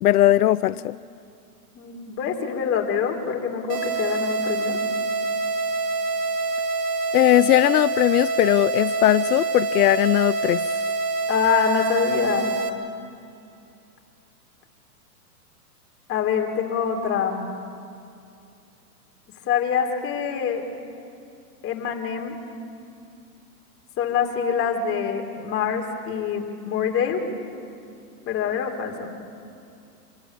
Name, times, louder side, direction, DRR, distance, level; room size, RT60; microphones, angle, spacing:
voice 1, 0.0-1.0 7.1-10.7, left 14 dB, 75° left, 16 dB, 0.6 m, -19 dB
voice 2, 1.7-4.8 11.3-12.5 16.1-17.5 19.5-20.6 21.6-22.4 24.0-27.2 28.2-29.1, left 7 dB, 30° left, 2 dB, 3.3 m, -25 dB
sound 1, 3.7-12.7, right 3 dB, 35° right, 2.3 m, -26 dB
27.0 x 21.0 x 8.6 m, 2.6 s
hypercardioid pair, 135°, 46 cm